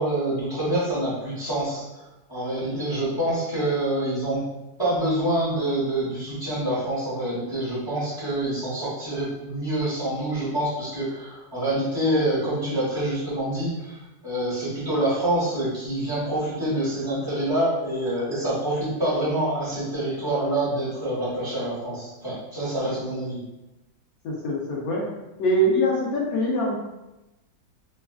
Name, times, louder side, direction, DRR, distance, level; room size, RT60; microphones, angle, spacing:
voice 1, 0.0-1.8 2.3-4.5 4.8-23.4, right 1 dB, 20° left, -10 dB, 0.9 m, -26 dB
voice 2, 24.2-25.0 25.4-26.8, equal, 65° left, -3 dB, 1.1 m, -23 dB
3.2 x 2.3 x 2.2 m, 0.99 s
omnidirectional pair, 1.8 m